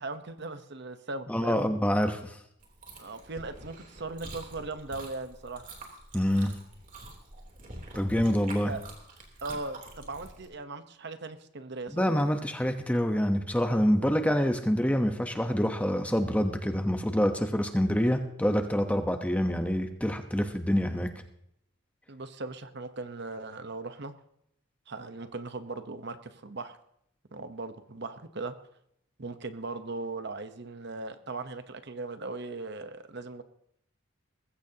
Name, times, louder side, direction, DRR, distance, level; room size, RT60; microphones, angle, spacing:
voice 1, 0.0-1.7 3.0-5.6 8.4-8.8 9.4-12.1 14.0-14.1 22.1-24.1 24.9-26.7 27.3-28.5 29.2-33.4, right 3 dB, 55° right, 10 dB, 1.0 m, -38 dB
voice 2, 1.3-2.3 6.1-6.5 7.9-8.7 11.9-21.1, equal, 5° left, 6 dB, 0.9 m, -26 dB
Chewing mastication, 2.6-10.4, right 2 dB, 40° right, 3.3 m, -46 dB
20.0 x 15.5 x 2.9 m, 0.75 s
head